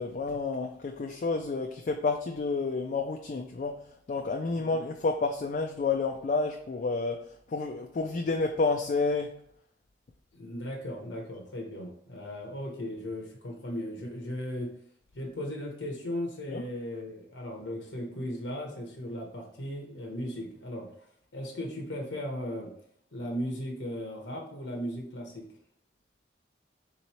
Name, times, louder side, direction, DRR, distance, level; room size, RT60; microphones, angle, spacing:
voice 1, 0.0-3.8 4.1-7.2 7.5-9.3 16.5-16.6, left 3 dB, 45° left, 3 dB, 0.3 m, -30 dB
voice 2, 10.3-14.7 15.1-20.9 21.3-22.7 23.1-25.5, equal, 90° left, 0 dB, 0.9 m, -37 dB
3.8 x 3.0 x 4.2 m, 0.67 s
head